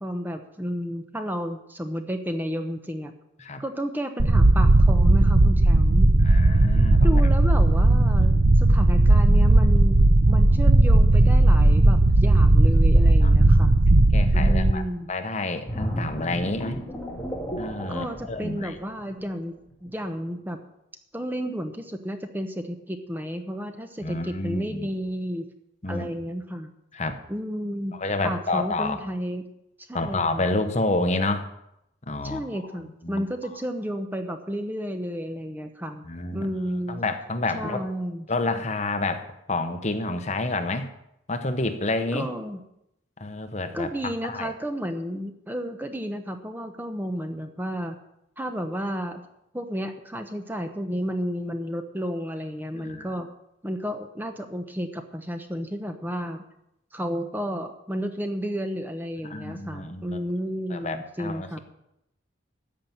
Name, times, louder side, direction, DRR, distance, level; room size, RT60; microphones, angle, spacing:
voice 1, 0.0-3.1 3.6-6.1 7.0-13.8 14.3-15.1 17.9-19.6 19.8-20.6 21.1-25.5 25.9-26.7 27.3-29.4 29.9-30.4 32.2-36.0 36.3-37.0 37.5-38.3 42.1-42.6 43.7-47.9 48.4-49.2 49.5-53.3 53.6-56.4 56.9-61.6, equal, 10° right, 6 dB, 0.9 m, -32 dB
sound 1, 4.2-14.7, right 2 dB, 70° right, 0.8 m, -17 dB
voice 2, 6.2-7.2 8.6-8.7 13.2-13.3 14.1-14.8 15.1-16.8 17.6-18.7 24.0-24.9 25.8-26.1 26.9-27.2 27.9-29.0 29.9-31.5 32.1-32.5 33.0-33.2 36.1-36.5 36.9-37.8 38.3-40.9 41.3-42.3 43.2-43.9 44.2-44.5 52.7-53.1 59.2-60.2 60.7-61.6, left 2 dB, 35° left, 7 dB, 1.0 m, -29 dB
sound 2, 15.7-19.2 19.7-19.9, equal, 10° left, 2.6 m, -33 dB
14.0 x 5.9 x 9.1 m, 0.82 s
head